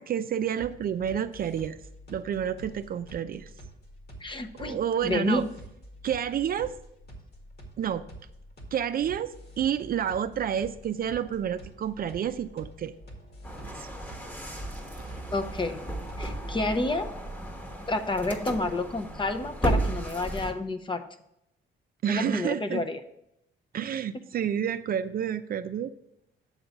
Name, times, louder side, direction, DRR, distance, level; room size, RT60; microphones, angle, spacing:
voice 1, 0.0-1.8 2.1-3.5 4.6-5.5 6.0-6.7 7.8-8.1 8.7-12.9 13.7-13.9 15.2-15.3 22.0-22.8 23.7-25.9, right 9 dB, 50° right, 10 dB, 0.4 m, -29 dB
sound 1, 0.6-16.5, equal, 55° left, 1.9 m, -47 dB
voice 2, 4.2-4.8 5.0-5.5 15.3-15.8 16.2-17.1 17.9-21.1 22.1-23.0, left 2 dB, 25° left, 8 dB, 0.7 m, -29 dB
sound 2, 13.4-20.5, right 1 dB, 10° left, 1.2 m, -34 dB
8.0 x 3.8 x 6.7 m, 0.80 s
cardioid pair, 90°, 20 cm